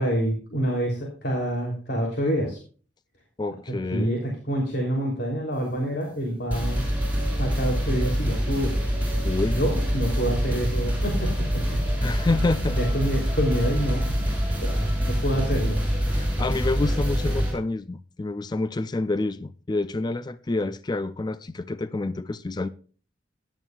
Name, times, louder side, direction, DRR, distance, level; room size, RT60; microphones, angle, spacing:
voice 1, 0.0-2.6 3.7-6.8 7.4-8.8 9.5-12.1 12.7-14.2 14.6-15.8, equal, 60° left, 3.2 m, -27 dB
voice 2, 3.4-4.1 9.2-9.6 12.0-12.8 16.1-22.7, left 2 dB, 25° left, 0.4 m, -28 dB
sound 1, 6.5-17.5, equal, 10° right, 6.5 m, -25 dB
17.0 x 11.0 x 2.4 m
head